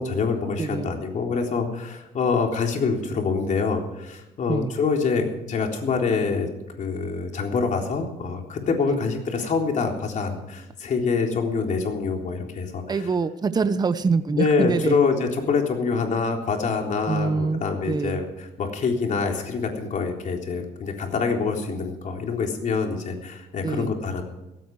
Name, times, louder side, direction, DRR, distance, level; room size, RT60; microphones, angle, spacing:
voice 1, 0.0-6.5 6.8-13.1 14.3-24.2, left 5 dB, 45° left, 2 dB, 3.7 m, -25 dB
voice 2, 0.6-0.9 4.5-4.7 8.9-9.0 12.9-15.0 17.1-17.6 17.9-18.2 23.6-23.9, right 4 dB, 25° right, 11 dB, 0.9 m, -25 dB
16.5 x 15.0 x 4.8 m, 0.96 s
cardioid pair, 110°, 17 cm